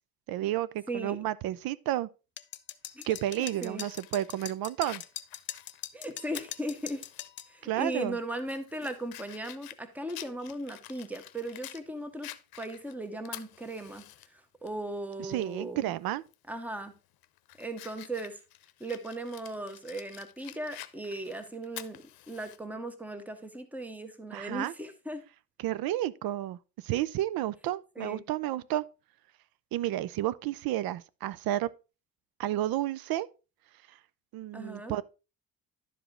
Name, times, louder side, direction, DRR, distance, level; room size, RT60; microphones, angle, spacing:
voice 1, 0.3-2.1 3.1-5.0 7.6-8.2 15.2-16.2 24.3-24.7 25.6-28.8 29.7-31.7 32.4-33.3 33.9-34.0 34.3-35.0, right 13 dB, 75° right, 0.5 m, -31 dB
voice 2, 0.9-1.2 2.9-3.0 3.6-3.9 5.9-7.0 7.5-14.0 14.3-15.9 16.5-16.9 17.6-18.4 18.8-25.2 28.0-28.2 34.5-35.0, right 1 dB, 5° right, 0.8 m, -37 dB
sound 1, 2.4-7.5, left 10 dB, 35° left, 0.4 m, -41 dB
Fire, 3.4-7.3 7.7-7.8 8.3-11.8 12.2-14.3 14.7-14.8 16.3-16.5 17.0-22.6, left 14 dB, 80° left, 0.7 m, -48 dB
11.5 x 5.0 x 3.7 m
cardioid pair, 180°, 36 cm